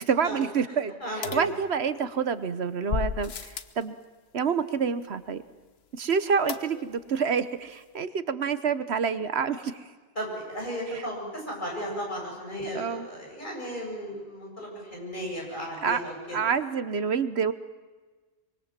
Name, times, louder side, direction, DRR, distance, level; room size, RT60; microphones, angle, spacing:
voice 1, 0.0-0.9 1.2-3.9 4.3-5.4 5.9-9.7 10.9-11.0 12.7-13.1 15.8-16.0 16.3-17.5, right 6 dB, 75° right, 13 dB, 1.3 m, -27 dB
voice 2, 1.0-1.4 9.6-9.7 10.2-16.4, equal, 45° left, -1 dB, 7.8 m, -35 dB
sound 1, 1.2-2.2 2.9-3.8 6.5-7.1 7.4-7.5 7.7-7.8, left 6 dB, 70° left, 1.2 m, -34 dB
24.5 x 23.5 x 7.5 m, 1.3 s
omnidirectional pair, 1.1 m